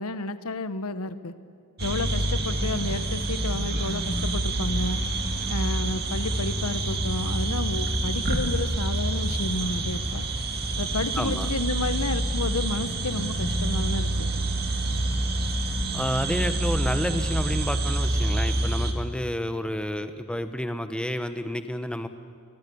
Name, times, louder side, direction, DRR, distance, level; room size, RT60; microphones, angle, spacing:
voice 1, 0.0-1.3 1.8-5.0 5.5-10.2 10.8-14.3, left 2 dB, 80° left, 11 dB, 1.3 m, -31 dB
sound 1, 1.8-18.9, right 2 dB, 45° right, 2.2 m, -27 dB
voice 2, 11.2-11.5 15.9-22.1, equal, 5° left, 8 dB, 1.2 m, -30 dB
30.0 x 23.5 x 7.1 m, 2.2 s
head